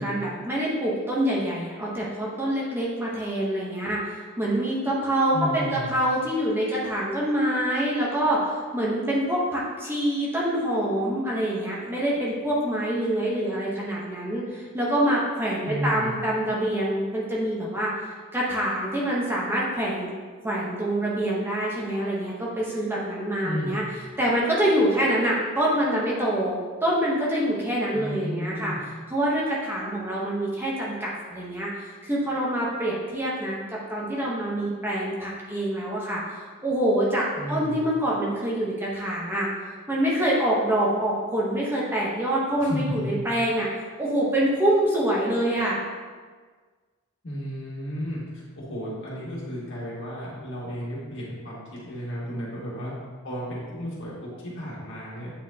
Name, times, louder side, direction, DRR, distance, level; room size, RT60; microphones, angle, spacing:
voice 1, 0.0-17.9 18.3-20.1 20.4-23.8 24.2-28.7 29.1-39.5 39.9-43.7 44.0-45.8 52.3-52.5, right 1 dB, 10° right, -5 dB, 0.9 m, -26 dB
voice 2, 5.3-5.9 15.6-16.1 23.4-23.7 27.9-28.8 37.4-37.8 42.6-43.1 47.2-52.9 53.2-55.3, equal, 60° left, -6 dB, 1.8 m, -33 dB
8.5 x 4.3 x 2.8 m, 1.5 s
head